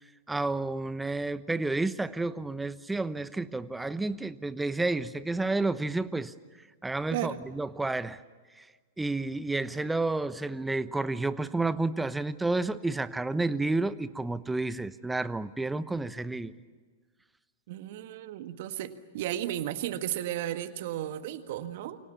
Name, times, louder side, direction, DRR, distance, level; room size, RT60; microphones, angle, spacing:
voice 1, 0.3-6.3 6.8-8.2 8.6-8.7 9.0-16.5, right 2 dB, 5° right, 15 dB, 1.0 m, -30 dB
voice 2, 7.1-7.4 17.7-22.0, right 12 dB, 55° right, 10 dB, 1.7 m, -34 dB
28.5 x 25.0 x 7.2 m, 1.5 s
figure-of-eight pair, 100°, 0 cm